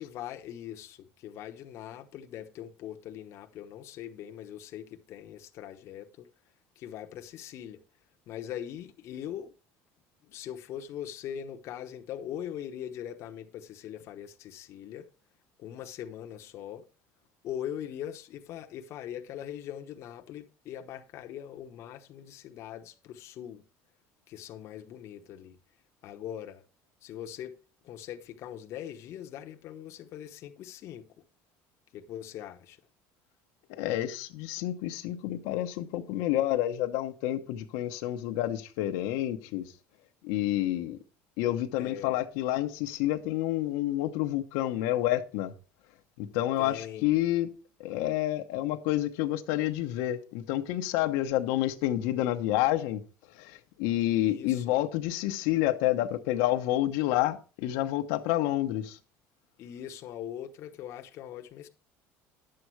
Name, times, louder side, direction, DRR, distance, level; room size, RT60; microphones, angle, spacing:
voice 1, 0.0-6.3 6.8-7.8 8.3-9.5 10.2-15.1 15.6-16.9 17.4-23.6 24.3-25.6 26.0-26.6 27.0-27.6 27.8-31.1 31.9-32.8 41.8-42.2 46.6-47.1 54.2-54.8 59.6-61.7, left 10 dB, 50° left, 1.0 m, -41 dB
voice 2, 33.7-39.7 40.2-41.0 41.4-45.5 46.2-47.5 47.8-53.0 53.4-59.0, left 14 dB, 80° left, 1.0 m, -29 dB
10.5 x 7.7 x 4.6 m
cardioid pair, 145°, 6 cm